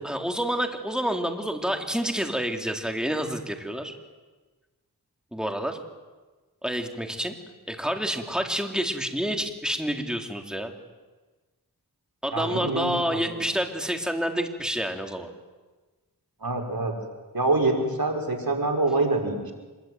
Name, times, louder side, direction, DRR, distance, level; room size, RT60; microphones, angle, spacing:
voice 1, 0.0-3.9 5.3-5.8 6.6-7.3 7.7-10.7 12.2-15.3, equal, ahead, 4 dB, 3.7 m, -28 dB
voice 2, 12.3-13.2 16.4-17.0 17.3-19.5, right 2 dB, 65° right, 2 dB, 5.4 m, -25 dB
26.0 x 22.5 x 9.5 m, 1.2 s
wide cardioid pair, 45°, 38 cm